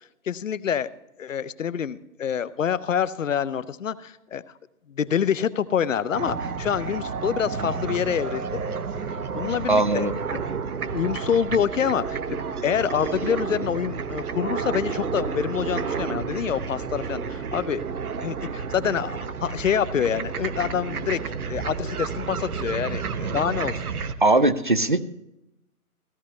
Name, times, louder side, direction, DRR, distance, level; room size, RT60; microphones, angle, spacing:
voice 1, 0.3-0.9 1.2-4.4 4.9-8.5 9.3-10.4 10.9-17.8 18.2-21.2 21.5-23.8, left 8 dB, 55° left, 16 dB, 0.7 m, -26 dB
sound 1, 6.1-24.1, right 5 dB, 70° right, 1.0 m, -31 dB
voice 2, 9.7-10.1 24.2-25.0, right 2 dB, 35° right, 13 dB, 0.4 m, -20 dB
16.0 x 12.0 x 3.2 m, 0.88 s
figure-of-eight pair, 150°, 45 cm